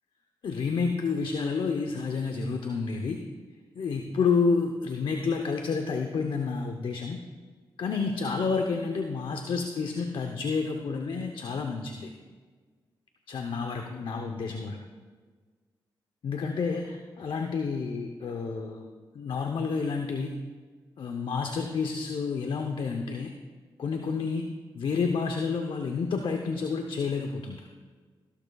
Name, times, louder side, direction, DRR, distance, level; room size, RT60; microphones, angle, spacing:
voice 1, 0.4-3.2 3.8-7.2 7.8-12.1 13.3-14.8 16.2-20.4 21.0-23.3 23.8-27.6, left 5 dB, 70° left, 4 dB, 0.8 m, -29 dB
14.5 x 12.5 x 2.3 m, 1.5 s
supercardioid pair, 50°, 9 cm